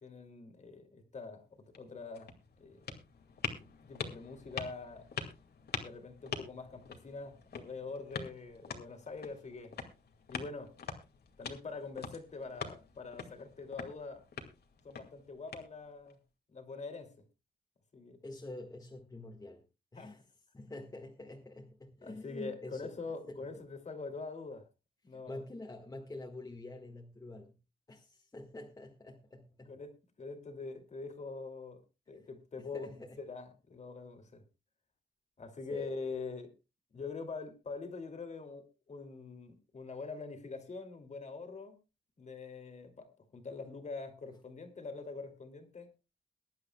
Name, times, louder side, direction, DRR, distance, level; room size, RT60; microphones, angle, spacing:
voice 1, 0.0-2.3 2.6-2.9 3.8-5.1 5.8-9.7 10.3-10.7 11.4-14.2 14.8-16.2 16.5-17.1 17.9-18.2 20.0-20.2 22.0-24.7 25.0-25.4 29.7-34.4 35.4-36.5 36.9-41.8 42.2-45.9, left 4 dB, 40° left, 2.6 m, -44 dB
sound 1, 1.6-16.1, left 5 dB, 70° left, 2.2 m, -45 dB
voice 2, 18.2-19.6 19.9-20.2 20.5-22.9 23.3-23.4 25.1-27.5 27.9-29.7 32.1-32.3 32.6-33.2 35.7-35.9, left 2 dB, 20° left, 1.7 m, -47 dB
22.5 x 11.0 x 2.3 m
wide cardioid pair, 160°, 17 cm